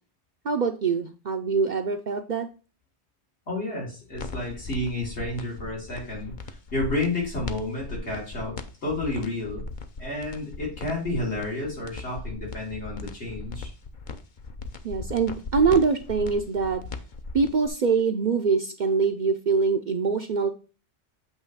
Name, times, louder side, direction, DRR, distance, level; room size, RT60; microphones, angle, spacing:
voice 1, 0.4-2.5 14.8-16.8 17.3-20.5, right 5 dB, 55° right, 5 dB, 0.6 m, -24 dB
voice 2, 3.5-8.6 8.8-9.7 10.0-13.7, left 2 dB, 80° left, -3 dB, 3.4 m, -31 dB
sound 1, 4.1-17.7, left 3 dB, 50° left, 0.8 m, -37 dB
8.1 x 3.1 x 5.4 m, 0.35 s
omnidirectional pair, 1.1 m